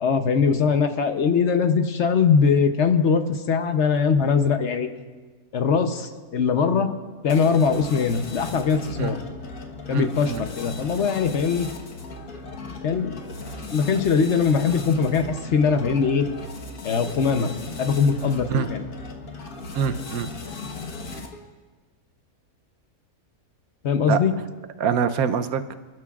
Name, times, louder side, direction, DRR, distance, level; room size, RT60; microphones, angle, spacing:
voice 1, 0.0-4.9 5.5-6.9 7.2-9.2 9.9-11.7 12.8-13.2 13.7-16.3 16.8-17.5 17.8-18.8 23.8-24.3, left 5 dB, 55° left, 7 dB, 1.1 m, -21 dB
sound 1, 7.3-21.5, left 3 dB, 80° left, 1.8 m, -37 dB
voice 2, 9.9-10.4 18.5-18.7 19.7-20.3 24.1-24.2 24.8-25.6, right 7 dB, 80° right, 11 dB, 1.2 m, -24 dB
30.0 x 12.5 x 2.4 m, 1.4 s
omnidirectional pair, 1.5 m